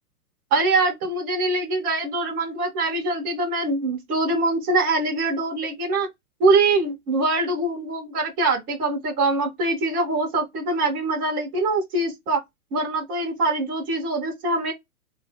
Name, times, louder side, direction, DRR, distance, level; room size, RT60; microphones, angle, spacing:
voice 1, 0.5-6.1 6.4-12.4 12.7-14.7, right 2 dB, 10° right, 0.3 m, -23 dB
2.8 x 2.2 x 3.3 m
hypercardioid pair, 130°, 45 cm